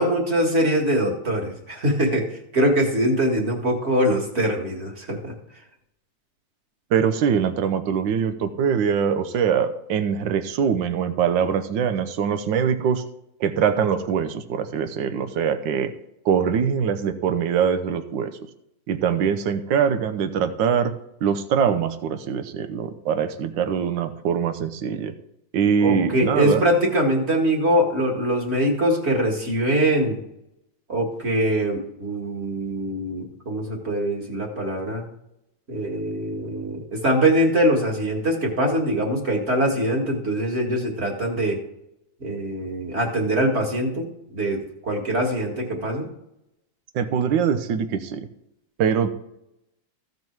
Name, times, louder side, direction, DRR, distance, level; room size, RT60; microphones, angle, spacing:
voice 1, 0.0-2.2 2.5-5.3 25.8-30.2 30.9-35.0 35.7-41.6 42.2-46.1, right 1 dB, 35° right, 0 dB, 2.1 m, -23 dB
voice 2, 6.9-13.0 13.4-15.9 16.2-18.3 18.9-20.9 21.2-25.1 25.5-26.6 46.9-48.3 48.8-49.1, right 7 dB, 80° right, 9 dB, 1.5 m, -23 dB
15.0 x 5.4 x 4.6 m, 0.82 s
omnidirectional pair, 2.0 m